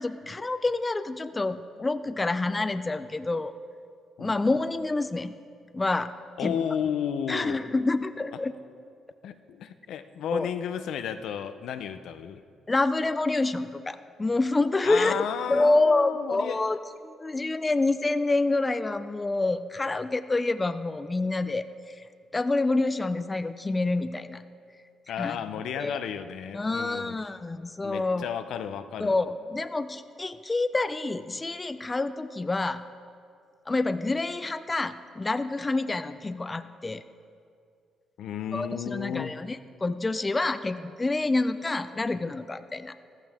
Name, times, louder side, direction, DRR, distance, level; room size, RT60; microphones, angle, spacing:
voice 1, 0.0-3.5 4.2-5.3 5.7-6.2 6.4-6.6 7.3-8.5 10.3-10.5 12.7-22.0 22.3-24.4 25.2-25.4 25.8-26.0 26.5-28.3 29.0-32.8 33.7-37.0 38.5-42.9, left 2 dB, 20° left, 11 dB, 0.5 m, -27 dB
voice 2, 6.4-7.6 9.2-12.4 14.8-16.6 25.1-27.2 27.8-29.2 38.2-39.3, left 8 dB, 80° left, 9 dB, 0.6 m, -33 dB
14.5 x 14.0 x 3.6 m, 2.3 s
cardioid pair, 90°, 0 cm